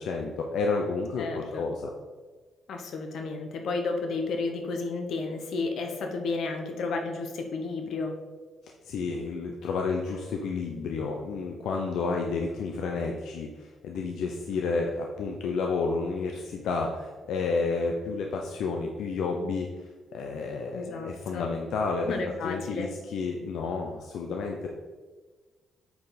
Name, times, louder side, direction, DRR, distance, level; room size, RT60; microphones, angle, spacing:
voice 1, 0.0-1.9 8.9-19.7 20.1-22.2 22.4-24.7, left 4 dB, 80° left, 1 dB, 0.7 m, -30 dB
voice 2, 1.2-1.7 2.7-8.2 20.7-21.5 22.1-22.9, left 3 dB, 65° left, 4 dB, 1.0 m, -32 dB
8.4 x 4.8 x 4.1 m, 1.3 s
cardioid pair, 155°, 0 cm